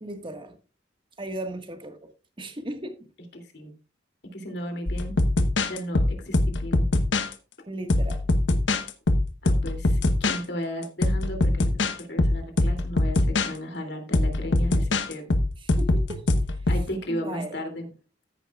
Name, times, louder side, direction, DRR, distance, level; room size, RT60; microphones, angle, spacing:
voice 1, 0.0-0.6 1.2-2.1 2.4-3.1 7.7-8.3 15.6-16.6 17.1-17.6, right 1 dB, 25° right, 1.6 m, -37 dB
voice 2, 3.3-3.7 4.3-5.1 5.7-6.9 9.4-13.2 13.4-15.3 16.7-17.9, equal, 60° left, 2.8 m, -35 dB
sound 1, 4.9-7.3 7.9-10.4 10.8-13.5 14.1-16.9, left 2 dB, 80° left, 1.1 m, -23 dB
14.0 x 10.5 x 2.4 m
head